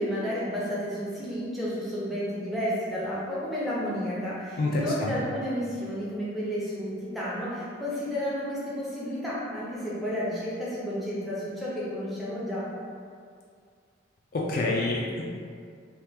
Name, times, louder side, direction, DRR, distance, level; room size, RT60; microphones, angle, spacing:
voice 1, 0.0-12.7, equal, ahead, -9 dB, 0.6 m, -31 dB
voice 2, 4.6-5.1 14.3-15.2, left 2 dB, 45° left, -3 dB, 0.3 m, -27 dB
2.9 x 2.3 x 3.4 m, 2.2 s
head